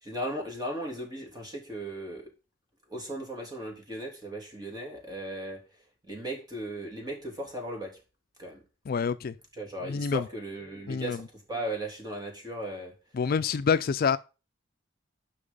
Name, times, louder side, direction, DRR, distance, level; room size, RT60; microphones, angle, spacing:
voice 1, 0.0-2.3 2.9-5.6 6.0-8.0 8.4-8.6 9.5-12.9, right 1 dB, 20° right, 3.3 m, -37 dB
voice 2, 8.9-9.3 9.8-10.2 10.9-11.2 13.1-14.2, left 6 dB, 50° left, 0.4 m, -27 dB
9.9 x 5.9 x 5.4 m
head